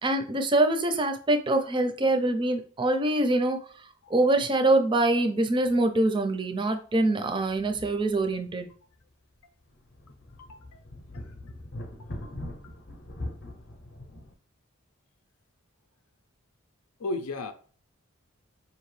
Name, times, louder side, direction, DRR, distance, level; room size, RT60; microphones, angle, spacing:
voice 1, 0.0-3.6 4.1-8.7, right 2 dB, 20° right, 0.4 m, -24 dB
sound 1, 5.6-5.8 6.2-6.3 7.2-8.6 9.0-9.1 9.6-14.3, left 1 dB, 45° left, 0.6 m, -42 dB
voice 2, 10.4-10.8 11.1-11.3 12.2-12.8 17.0-17.5, left 2 dB, 90° left, 0.5 m, -37 dB
4.9 x 2.8 x 3.1 m
head